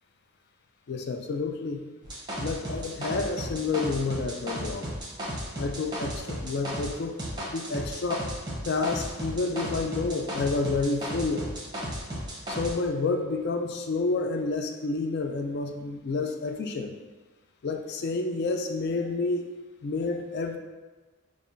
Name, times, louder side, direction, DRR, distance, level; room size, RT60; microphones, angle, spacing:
voice 1, 0.9-1.9 2.4-4.9 5.6-7.1 7.5-8.4 8.6-11.5 12.5-16.9 17.6-19.5 19.8-20.6, left 3 dB, 45° left, 5 dB, 0.3 m, -29 dB
sound 1, 2.0-6.9 7.2-12.7, equal, 20° right, 0.7 m, -34 dB
5.4 x 2.4 x 2.5 m, 1.3 s
head